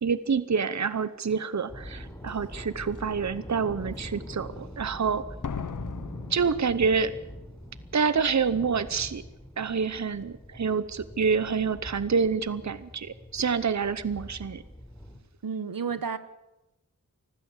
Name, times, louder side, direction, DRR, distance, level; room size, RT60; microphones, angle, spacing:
voice 1, 0.0-5.2 6.3-7.2 7.9-9.2 9.6-14.6, right 5 dB, 55° right, 0.9 m, -27 dB
sound 1, 1.7-15.2, equal, 10° left, 4.0 m, -43 dB
Slam, 2.3-2.4 3.0-3.4 5.4-7.3 7.6-7.7, left 6 dB, 65° left, 0.9 m, -38 dB
voice 2, 15.4-16.2, right 6 dB, 85° right, 1.1 m, -31 dB
25.0 x 15.5 x 7.3 m
wide cardioid pair, 55°, 34 cm